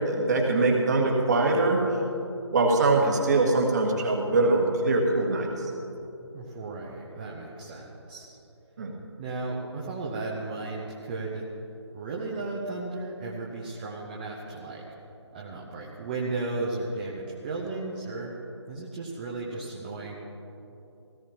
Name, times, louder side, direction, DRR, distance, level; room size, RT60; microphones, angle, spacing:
voice 1, 0.0-2.0 2.5-5.7 8.8-8.9, right 2 dB, 35° right, 0 dB, 1.9 m, -23 dB
voice 2, 6.3-8.3 9.2-11.5 11.9-14.8 15.3-18.3 18.7-20.2, right 3 dB, 20° right, -3 dB, 0.9 m, -35 dB
17.0 x 15.0 x 2.9 m, 2.9 s
figure-of-eight pair, 150°, 15 cm